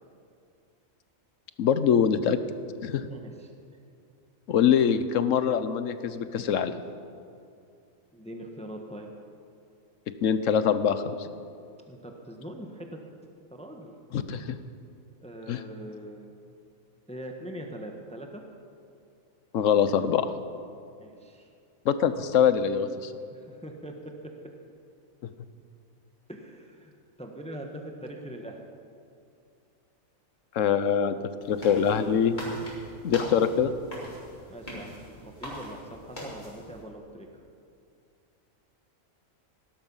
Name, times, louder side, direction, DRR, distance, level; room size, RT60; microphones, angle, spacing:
voice 1, 1.6-2.4 2.8-3.1 4.5-6.7 10.2-11.1 14.1-14.6 15.5-15.6 19.5-20.3 21.8-23.1 30.5-32.4 33.0-33.7, left 8 dB, 70° left, 12 dB, 1.1 m, -24 dB
voice 2, 3.1-3.5 8.1-9.1 11.9-13.0 13.5-13.9 15.2-16.3 17.1-18.4 21.0-21.5 23.3-24.3 26.3-28.6 34.5-37.3, right 1 dB, 5° left, 2 dB, 1.2 m, -42 dB
sound 1, 31.4-36.8, left 1 dB, 35° left, 4.3 m, -42 dB
18.0 x 12.0 x 5.6 m, 2.4 s
omnidirectional pair, 1.4 m